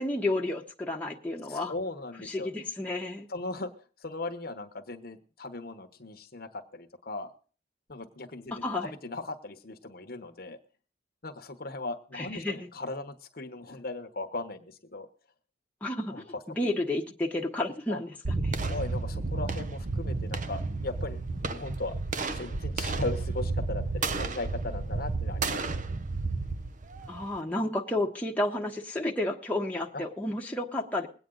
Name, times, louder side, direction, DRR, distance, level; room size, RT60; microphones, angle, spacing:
voice 1, 0.0-1.7 2.2-3.3 8.6-8.9 12.1-12.6 15.8-16.3 16.6-18.5 27.1-31.1, left 1 dB, 10° left, -1 dB, 1.2 m, -31 dB
voice 2, 1.5-2.5 3.3-3.7 4.0-7.3 7.9-10.6 11.2-15.1 16.1-16.2 16.5-16.6 17.9-18.0 18.5-22.0 22.3-25.7 29.9-30.0, left 2 dB, 55° left, 8 dB, 1.1 m, -38 dB
sound 1, 18.2-27.4, right 3 dB, 45° right, 0.7 m, -32 dB
21.5 x 8.9 x 3.9 m, 0.39 s
head